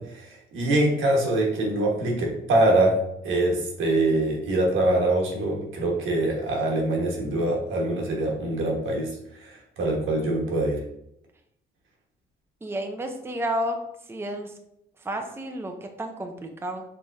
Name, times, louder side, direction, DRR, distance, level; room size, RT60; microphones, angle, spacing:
voice 1, 0.2-2.9 3.2-9.1 9.4-10.8, right 2 dB, 80° right, -1 dB, 1.4 m, -24 dB
voice 2, 12.6-13.8 14.1-14.5 15.0-16.8, right 1 dB, 10° right, 4 dB, 0.6 m, -31 dB
5.5 x 3.2 x 2.6 m, 0.79 s
cardioid pair, 90°, 20 cm